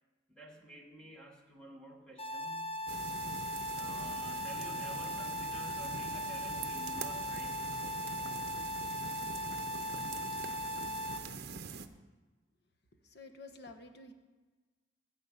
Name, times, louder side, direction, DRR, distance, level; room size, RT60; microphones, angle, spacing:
voice 1, 0.3-2.7 3.7-8.1, right 1 dB, 5° left, 0 dB, 1.3 m, -51 dB
sound 1, 2.2-11.2, left 1 dB, 30° left, 0.9 m, -38 dB
sound 2, 2.9-11.9, right 5 dB, 60° right, 0.7 m, -44 dB
voice 2, 12.9-14.1, left 3 dB, 60° left, 6 dB, 1.2 m, -51 dB
14.5 x 4.9 x 8.7 m, 1.3 s
head